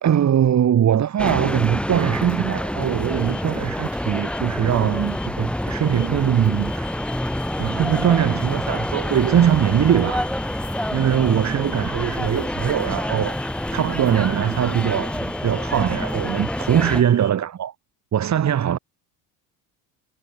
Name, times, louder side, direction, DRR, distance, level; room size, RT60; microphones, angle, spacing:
voice 1, 0.0-6.9 7.6-10.3 10.9-17.7 18.1-18.8, right 9 dB, 40° right, 1.7 m, -21 dB
sound 1, 1.2-17.0, equal, ahead, 2.5 m, -27 dB
sound 2, 2.8-17.3, left 17 dB, 65° left, 6.0 m, -43 dB
supercardioid pair, 85°, 44 cm